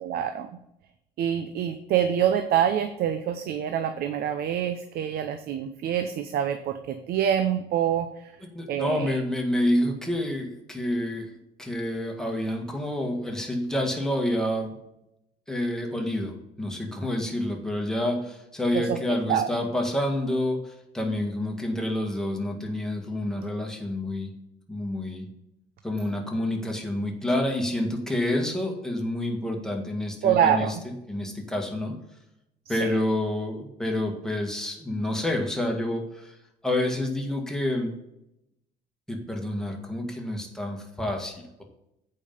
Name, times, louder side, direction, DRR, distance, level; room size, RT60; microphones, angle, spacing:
voice 1, 0.0-0.5 1.2-8.3 8.7-9.2 18.7-19.0 19.3-19.5 30.2-30.8 32.7-32.9, right 9 dB, 65° right, 9 dB, 0.7 m, -26 dB
voice 2, 8.5-14.7 15.5-24.3 24.7-25.3 25.8-30.8 31.1-32.0 32.7-36.4 36.6-38.0 39.1-41.6, left 1 dB, 5° left, 1 dB, 1.8 m, -28 dB
8.4 x 5.4 x 5.5 m, 0.84 s
cardioid pair, 110°, 17 cm